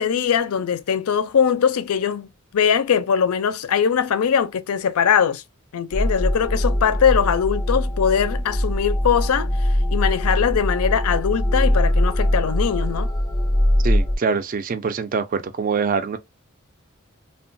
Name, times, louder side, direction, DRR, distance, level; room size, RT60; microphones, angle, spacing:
voice 1, 0.0-2.3 2.5-5.4 5.7-13.1, left 7 dB, 90° left, 0.4 m, -21 dB
sound 1, 5.9-14.2, equal, 20° left, 0.6 m, -21 dB
voice 2, 13.8-16.2, right 5 dB, 40° right, 0.3 m, -24 dB
3.0 x 2.2 x 2.5 m
head